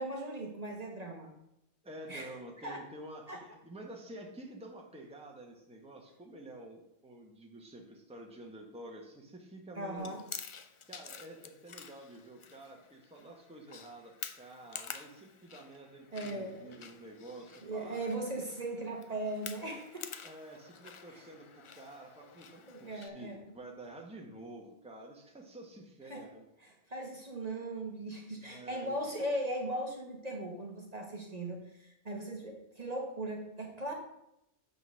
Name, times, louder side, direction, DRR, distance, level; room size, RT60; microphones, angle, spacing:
voice 1, 0.0-1.3 2.1-2.4 2.6-2.8 3.3-3.4 9.8-10.2 16.1-16.8 17.6-20.1 21.1-21.2 22.7-23.5 26.1-26.2 26.9-33.9, right 1 dB, 35° right, 1 dB, 1.2 m, -38 dB
voice 2, 1.8-10.1 10.9-18.1 20.2-26.5 28.4-29.0, right 1 dB, 5° right, 0 dB, 1.1 m, -49 dB
Chewing mastication, 10.0-23.1, left 6 dB, 50° left, 0.3 m, -49 dB
8.3 x 3.9 x 6.3 m, 0.82 s
omnidirectional pair, 1.1 m